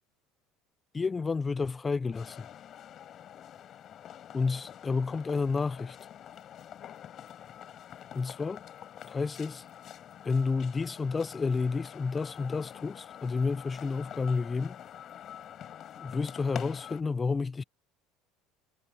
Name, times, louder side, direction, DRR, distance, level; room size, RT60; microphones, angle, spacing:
voice 1, 0.9-2.5 4.3-6.0 8.1-8.6 9.0-9.6 10.2-14.8 16.0-17.6, left 4 dB, 15° left, 0.3 m, -30 dB
sound 1, 2.1-17.0, left 10 dB, 40° left, 5.2 m, -46 dB
cardioid pair, 145°, 0 cm